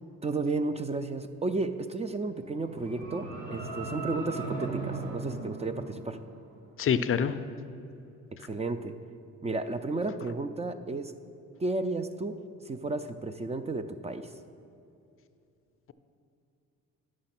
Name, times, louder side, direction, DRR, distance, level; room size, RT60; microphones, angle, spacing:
voice 1, 0.2-6.2 8.4-9.0 9.4-11.1 11.6-14.3, right 3 dB, 20° right, 9 dB, 0.4 m, -33 dB
sound 1, 2.3-6.6, right 3 dB, 75° right, 1.3 m, -38 dB
voice 2, 6.8-7.4, left 7 dB, 45° left, 12 dB, 0.4 m, -25 dB
8.9 x 6.2 x 5.9 m, 2.6 s
cardioid pair, 90°, 30 cm